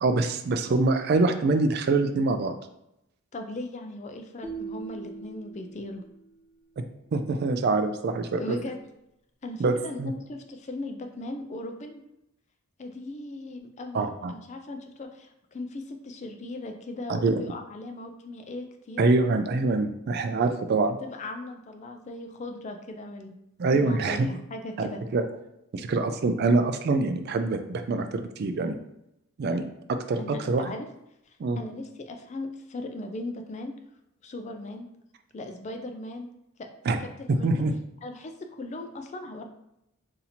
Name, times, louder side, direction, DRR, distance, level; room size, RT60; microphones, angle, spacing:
voice 1, 0.0-2.5 7.1-8.6 9.6-10.1 13.9-14.3 17.1-17.3 19.0-21.0 23.6-24.3 24.8-25.2 25.7-28.8 29.4-29.6 29.9-30.7 31.4-31.6 36.9-37.0 37.3-37.7, right 3 dB, 45° right, 8 dB, 0.3 m, -25 dB
voice 2, 3.3-6.0 8.4-8.8 9.4-12.0 12.8-19.1 20.4-20.5 21.0-23.3 23.7-25.0 30.2-30.9 31.6-33.7 34.2-34.9 35.3-36.3 36.6-36.7 37.0-37.5 38.0-39.4, left 2 dB, 30° left, 4 dB, 0.3 m, -38 dB
sound 1, 4.4-6.6, right 5 dB, 10° right, 0.7 m, -41 dB
2.8 x 2.7 x 4.1 m, 0.83 s
head